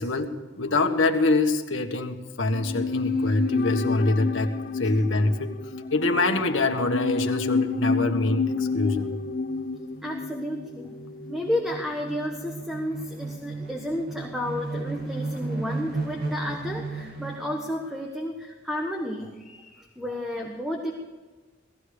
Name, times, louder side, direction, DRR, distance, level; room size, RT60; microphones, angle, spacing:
voice 1, 0.0-5.5 5.9-9.1, left 2 dB, 80° left, 4 dB, 1.6 m, -25 dB
sound 1, 2.5-11.8 12.1-12.2, left 4 dB, 50° left, 0.6 m, -29 dB
sound 2, 7.7-7.8 8.0-17.7, right 2 dB, 50° right, 2.5 m, -36 dB
voice 2, 10.0-10.9 11.3-20.9, left 1 dB, ahead, 1 dB, 1.4 m, -32 dB
17.5 x 15.0 x 4.9 m, 1.3 s
head